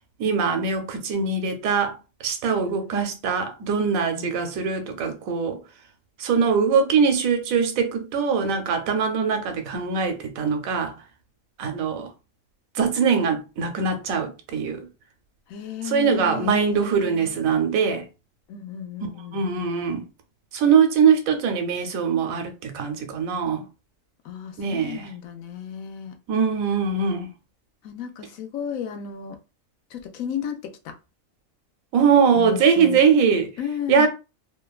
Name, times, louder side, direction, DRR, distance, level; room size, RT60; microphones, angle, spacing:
voice 1, 0.2-1.9 2.2-5.6 6.2-10.9 11.6-12.1 12.7-14.9 15.9-18.0 19.3-20.0 20.5-23.6 24.6-25.1 26.3-27.3 31.9-33.5 33.9-34.1, right 6 dB, 85° right, 1.0 m, -22 dB
voice 2, 15.5-17.4 18.5-19.5 24.2-26.2 27.8-29.4 29.9-30.9 32.3-33.0 33.6-34.1, left 8 dB, 80° left, 1.0 m, -34 dB
2.9 x 2.2 x 2.3 m
omnidirectional pair, 1.4 m